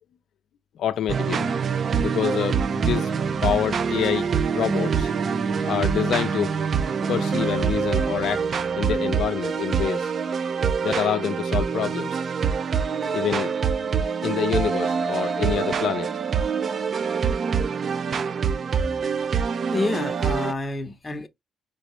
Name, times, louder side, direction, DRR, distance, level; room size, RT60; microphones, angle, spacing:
voice 1, 0.8-1.5 2.0-3.1 3.4-5.1 5.6-6.6 7.1-8.5 8.7-10.1 10.8-12.2 13.1-13.5 14.2-16.1, left 9 dB, 70° left, 0.4 m, -27 dB
sound 1, 1.1-20.5, right 6 dB, 50° right, 0.5 m, -25 dB
voice 2, 19.7-21.3, left 2 dB, 25° left, 0.8 m, -28 dB
4.0 x 3.7 x 3.0 m
cardioid pair, 90°, 0 cm